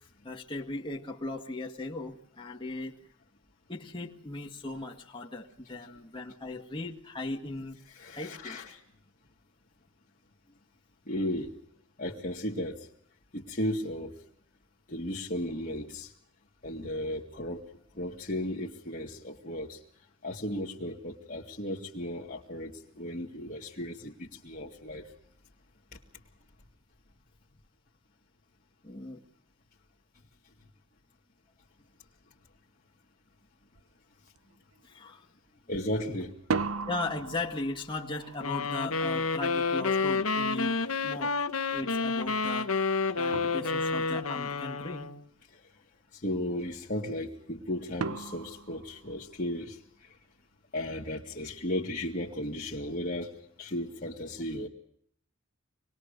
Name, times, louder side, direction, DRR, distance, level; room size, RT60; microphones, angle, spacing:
voice 1, 0.2-3.0 3.7-7.8 8.1-8.6 28.8-29.2 34.8-35.3 36.9-40.8 41.0-41.3 41.7-42.7 43.2-45.1, left 2 dB, 25° left, -1 dB, 1.9 m, -37 dB
voice 2, 7.9-8.8 11.1-11.5 12.0-12.9 13.3-14.2 14.9-16.1 16.6-17.6 17.9-19.8 20.2-25.1 35.7-36.4 45.5-45.6 46.1-50.1 50.7-54.7, left 1 dB, 40° left, -4 dB, 2.1 m, -35 dB
sound 1, 33.7-33.9 34.3-34.8 36.3-41.1 42.8-42.9 43.3-44.2 48.0-49.7, right 4 dB, 85° right, 0.9 m, -38 dB
sound 2, 38.4-45.2, left 4 dB, 90° left, 1.3 m, -29 dB
25.5 x 21.0 x 6.7 m, 0.68 s
head